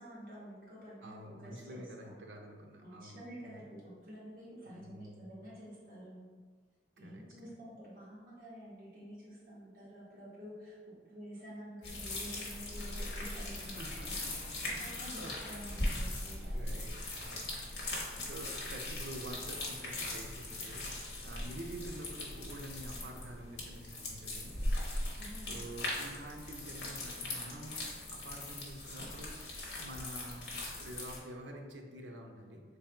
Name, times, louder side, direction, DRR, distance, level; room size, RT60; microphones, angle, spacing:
voice 1, 0.0-2.1 2.8-6.3 7.0-14.1 14.8-16.6 25.2-25.6, equal, 50° right, -8 dB, 1.1 m, -49 dB
voice 2, 1.0-3.6 4.6-5.3 7.0-7.2 13.6-15.3 15.9-16.1 16.4-25.1 25.5-27.8 28.1-29.5 29.8-30.5 30.7-32.6, right 1 dB, 80° right, 2 dB, 0.5 m, -48 dB
sound 1, 11.8-31.2, left 1 dB, 65° left, 0.9 m, -40 dB
3.4 x 2.2 x 4.3 m, 1.5 s
head